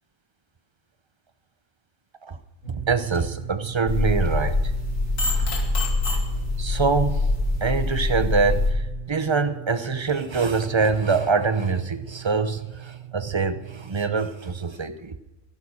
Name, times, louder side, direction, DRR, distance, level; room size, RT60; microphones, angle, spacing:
sound 1, 2.6-14.1, right 13 dB, 85° right, 3.5 m, -39 dB
voice 1, 2.7-4.7 6.6-7.3 7.6-15.2, right 4 dB, 25° right, 11 dB, 0.7 m, -24 dB
sound 2, 3.9-8.7, left 3 dB, 85° left, 2.7 m, -24 dB
13.0 x 11.5 x 6.3 m, 1.0 s
omnidirectional pair, 1.3 m